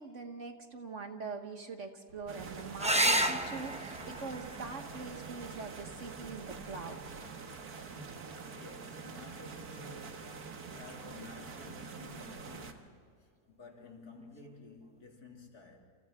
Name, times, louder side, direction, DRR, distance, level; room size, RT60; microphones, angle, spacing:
voice 1, 0.0-7.0, right 4 dB, 50° right, 1.6 m, -43 dB
sound 1, 2.1-7.1, right 2 dB, 85° right, 4.7 m, -58 dB
sound 2, 2.3-12.7, right 4 dB, 65° right, 2.0 m, -46 dB
sound 3, 2.8-7.8 9.7-10.3 13.8-13.9 14.2-14.3, right 1 dB, 5° right, 0.6 m, -34 dB
voice 2, 8.5-15.9, left 3 dB, 65° left, 3.2 m, -53 dB
29.0 x 28.0 x 3.7 m
omnidirectional pair, 1.8 m